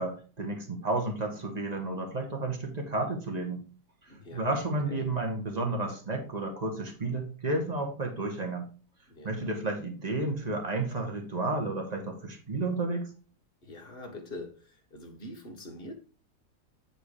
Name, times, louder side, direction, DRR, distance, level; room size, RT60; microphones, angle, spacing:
voice 1, 0.0-3.6 4.3-8.7 9.2-13.1, right 2 dB, 25° right, 1.9 m, -32 dB
voice 2, 4.1-5.1 9.1-9.5 13.6-16.0, left 2 dB, 35° left, 1.9 m, -44 dB
9.9 x 3.9 x 5.0 m
omnidirectional pair, 1.7 m